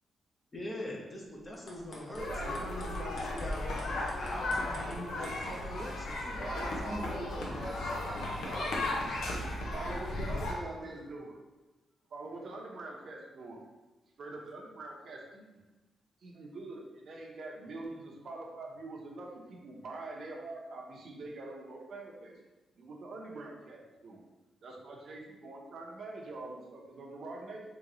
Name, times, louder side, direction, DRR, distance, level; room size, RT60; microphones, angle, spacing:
voice 1, 0.5-3.6 4.2-7.0, left 1 dB, 25° left, -2 dB, 0.8 m, -42 dB
sound 1, 1.4-5.9, left 1 dB, 60° left, 0.8 m, -46 dB
voice 2, 2.1-2.5 6.4-7.4 8.4-8.7 9.7-11.3 12.1-13.6 14.2-15.6 16.2-22.4 22.8-24.2 24.6-27.6, right 2 dB, 65° right, -2 dB, 0.8 m, -44 dB
sound 2, 2.2-10.5, left 2 dB, 90° left, 0.7 m, -35 dB
voice 3, 6.4-8.7 9.1-10.2 10.5-11.0, right 1 dB, 20° right, -3 dB, 0.9 m, -48 dB
3.2 x 3.0 x 3.8 m, 1.1 s
cardioid pair, 105°, 0 cm